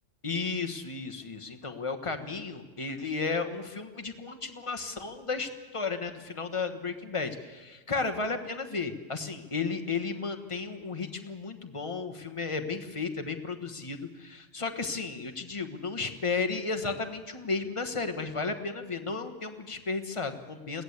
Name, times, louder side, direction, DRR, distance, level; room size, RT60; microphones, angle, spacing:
voice 1, 0.2-20.8, left 4 dB, 25° left, 7 dB, 1.3 m, -33 dB
21.5 x 16.5 x 8.2 m, 1.3 s
omnidirectional pair, 1.3 m